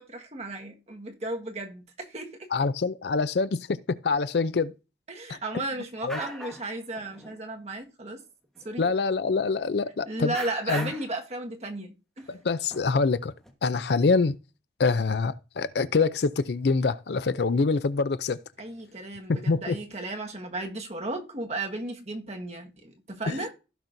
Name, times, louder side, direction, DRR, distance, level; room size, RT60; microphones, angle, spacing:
voice 1, 0.0-2.4 5.1-8.2 8.6-8.9 10.0-12.2 18.6-23.5, right 2 dB, 35° right, 1.6 m, -35 dB
voice 2, 2.5-4.7 5.3-5.4 6.0-6.2 8.8-10.3 10.7-10.9 12.3-13.3 13.6-14.4 14.8-18.4 19.3-19.8 23.3-23.4, left 4 dB, 65° left, 0.5 m, -25 dB
sound 1, 5.7-5.8 6.1-6.7 7.0-7.4 8.1-8.2 8.6-8.7 9.9-10.0 10.3-11.2 12.2-12.3 12.7-13.5, equal, 5° left, 1.3 m, -39 dB
15.5 x 6.0 x 2.6 m
head